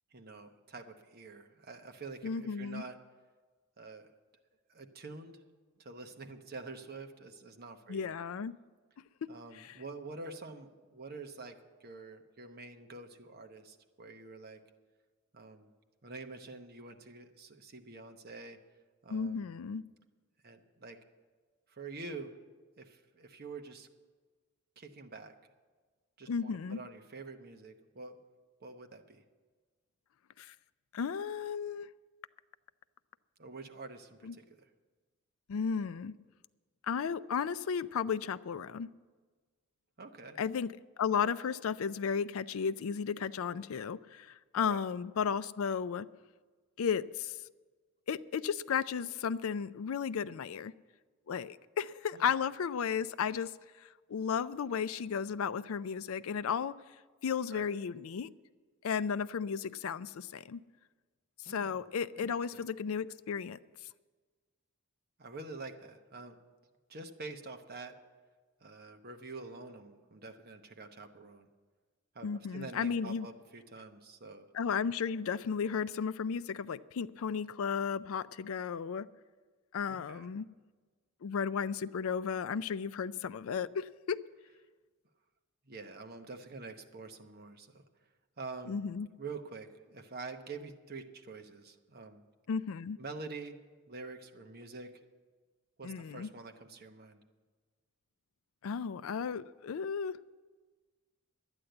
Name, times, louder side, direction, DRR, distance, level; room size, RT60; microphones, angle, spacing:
voice 1, 0.1-3.0 3.8-4.1 4.7-5.4 5.8-8.1 9.3-14.6 15.3-15.7 16.0-18.6 19.0-19.5 20.4-21.0 21.7-22.3 22.8-23.9 24.8-25.3 26.2-28.2 28.6-29.2 33.4-34.4 40.0-40.4 44.7-44.8 52.1-52.3 57.5-57.7 61.4-61.9 62.2-62.6 65.2-66.4 66.9-67.9 68.6-71.5 72.1-74.5 79.9-80.3 85.6-87.8 88.4-88.8 89.2-92.2 93.0-93.6 93.9-95.0 95.8-97.2, right 3 dB, 45° right, 5 dB, 0.9 m, -47 dB
voice 2, 2.2-2.8 7.9-8.5 9.2-9.3 9.6-9.7 19.1-19.8 26.3-26.8 30.4-30.5 30.9-31.9 34.2-34.3 35.5-36.1 36.9-38.9 40.4-40.7 41.0-46.1 46.8-47.4 48.1-50.7 51.3-53.5 53.8-56.7 57.2-58.3 58.8-60.6 61.5-63.6 72.2-73.3 74.5-79.1 79.7-80.5 81.2-84.2 88.7-89.1 92.5-93.0 95.8-96.3 98.6-100.2, left 6 dB, 70° left, 16 dB, 0.4 m, -34 dB
11.5 x 9.7 x 7.9 m, 1.4 s
head